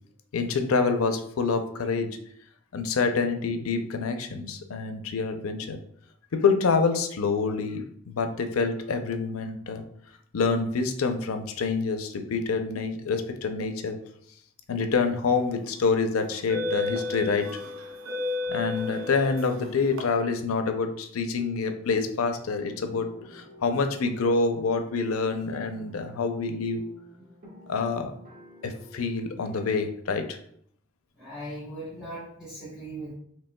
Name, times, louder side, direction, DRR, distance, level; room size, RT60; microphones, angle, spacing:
voice 1, 0.3-2.1 2.7-5.8 6.3-9.8 10.3-14.0 14.7-17.5 18.5-26.8 27.7-28.1 28.6-30.4, left 4 dB, 90° left, 7 dB, 0.5 m, -27 dB
sound 1, 15.2-15.5 16.2-20.0, left 3 dB, 75° right, 0.8 m, -33 dB
sound 2, 22.6-29.8, left 1 dB, 40° right, 1.4 m, -50 dB
voice 2, 31.2-33.1, right 1 dB, 5° right, -11 dB, 1.3 m, -39 dB
5.2 x 3.1 x 2.2 m, 0.67 s
head